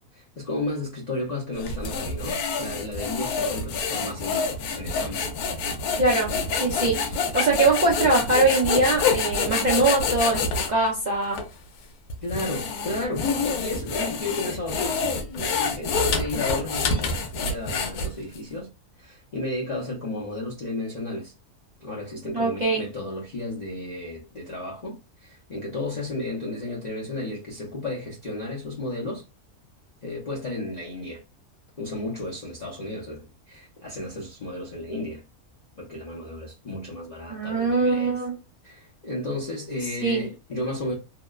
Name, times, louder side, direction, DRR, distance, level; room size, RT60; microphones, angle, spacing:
voice 1, 0.0-4.5 4.7-5.3 12.2-18.7 19.0-21.3 21.8-29.2 30.0-31.2 31.8-35.2 35.8-38.2 38.6-40.9, left 2 dB, 45° left, 0.5 m, -33 dB
sound 1, 1.6-10.7 11.3-11.5 12.1-18.4, left 4 dB, 85° left, 1.1 m, -27 dB
voice 2, 6.0-11.4 22.3-22.8 37.3-38.3 40.0-40.2, right 3 dB, 50° right, 0.5 m, -22 dB
2.8 x 2.1 x 2.3 m
omnidirectional pair, 1.5 m